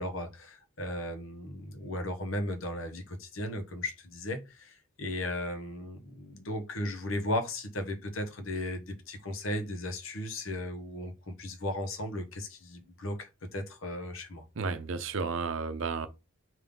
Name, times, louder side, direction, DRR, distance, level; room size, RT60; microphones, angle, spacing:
voice 1, 0.0-14.4, left 1 dB, 75° left, 1.0 m, -36 dB
voice 2, 14.6-16.1, right 4 dB, 70° right, 0.6 m, -32 dB
5.2 x 2.7 x 3.6 m
head